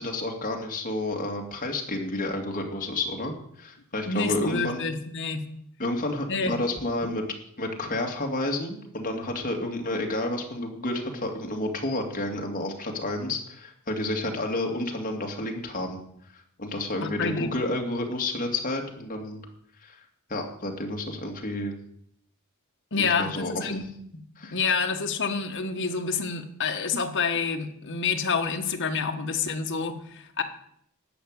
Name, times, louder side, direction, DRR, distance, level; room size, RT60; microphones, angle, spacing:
voice 1, 0.0-4.8 5.8-7.2 7.6-16.0 16.3-19.4 19.8-20.0 20.3-21.7 23.0-23.7 24.4-24.6, left 2 dB, 40° left, 1 dB, 2.4 m, -30 dB
voice 2, 4.0-5.4 6.3-6.6 17.0-17.5 22.9-23.8 24.1-24.2 24.5-30.4, left 5 dB, 55° left, 6 dB, 1.4 m, -28 dB
13.5 x 5.9 x 9.7 m, 0.69 s
head